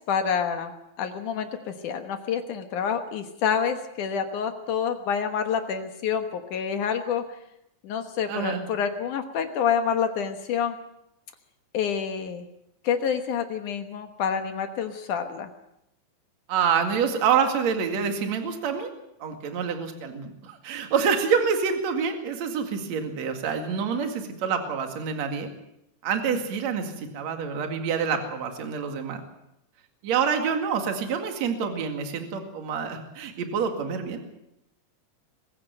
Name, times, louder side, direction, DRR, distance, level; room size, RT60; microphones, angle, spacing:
voice 1, 0.1-0.7 1.0-7.2 7.8-10.8 11.7-12.5 12.8-15.5, left 7 dB, 70° left, 7 dB, 2.0 m, -27 dB
voice 2, 8.3-8.7 16.5-18.9 19.2-25.5 26.0-29.2 30.0-34.2, right 6 dB, 45° right, 5 dB, 2.8 m, -27 dB
23.0 x 15.5 x 7.9 m, 0.82 s
omnidirectional pair, 5.2 m